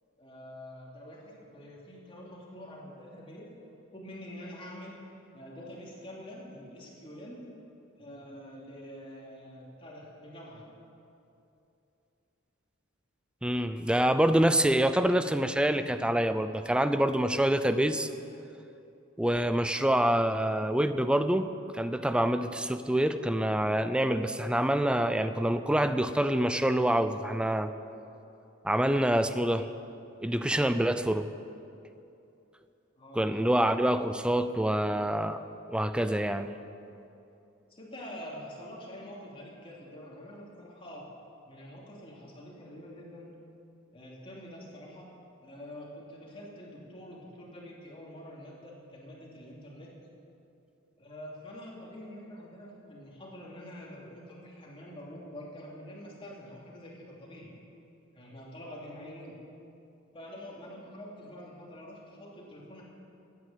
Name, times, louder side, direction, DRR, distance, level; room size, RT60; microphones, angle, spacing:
voice 1, 0.2-5.0 5.3-7.4 8.0-10.7 33.0-33.6 37.7-41.1 41.5-43.3 43.9-45.1 45.4-49.9 51.0-57.5 58.1-59.3 60.1-62.8, equal, 25° left, -3 dB, 2.8 m, -46 dB
voice 2, 13.4-18.1 19.2-21.5 21.7-27.7 28.6-29.7 30.2-31.3 33.1-35.4 35.7-36.5, right 1 dB, 5° right, 11 dB, 0.4 m, -26 dB
15.0 x 9.6 x 7.4 m, 2.8 s
head